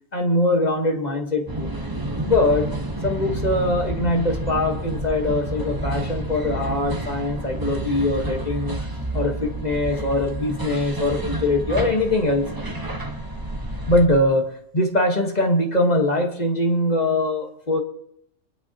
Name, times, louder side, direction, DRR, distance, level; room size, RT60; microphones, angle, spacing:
voice 1, 0.1-1.7 2.2-2.7 3.0-8.8 9.1-12.5 13.9-17.8, left 1 dB, 35° left, 2 dB, 1.5 m, -22 dB
sound 1, 1.5-14.1, right 1 dB, 15° right, 1.1 m, -29 dB
23.0 x 11.0 x 2.9 m, 0.72 s
omnidirectional pair, 1.3 m